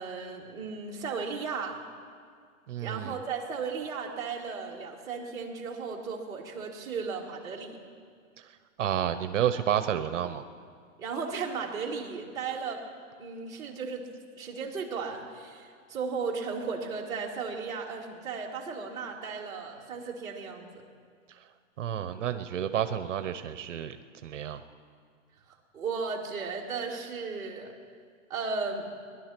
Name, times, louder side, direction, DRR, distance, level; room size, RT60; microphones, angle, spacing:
voice 1, 0.0-1.8 2.8-7.8 11.0-12.8 13.2-14.1 14.4-20.8 25.5-27.7 28.3-28.9, right 5 dB, 10° right, -6 dB, 1.6 m, -35 dB
voice 2, 2.7-3.2 8.4-10.4 21.3-21.5 21.8-24.0 24.2-24.6, right 10 dB, 65° right, 10 dB, 0.8 m, -30 dB
19.5 x 11.0 x 6.0 m, 2.1 s
hypercardioid pair, 170°, 40 cm